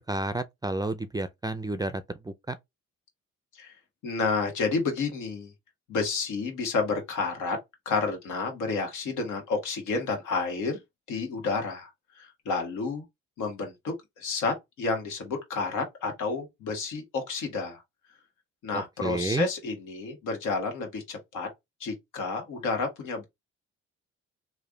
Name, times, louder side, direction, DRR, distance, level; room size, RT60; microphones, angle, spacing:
voice 1, 0.0-2.6 19.0-19.5, right 2 dB, 15° right, 0.4 m, -31 dB
voice 2, 4.0-5.5 5.9-7.6 7.8-10.8 11.1-13.0 13.4-17.8 18.6-21.5 21.8-23.2, left 4 dB, 80° left, 1.6 m, -30 dB
3.2 x 2.5 x 3.7 m
cardioid pair, 90°, 30 cm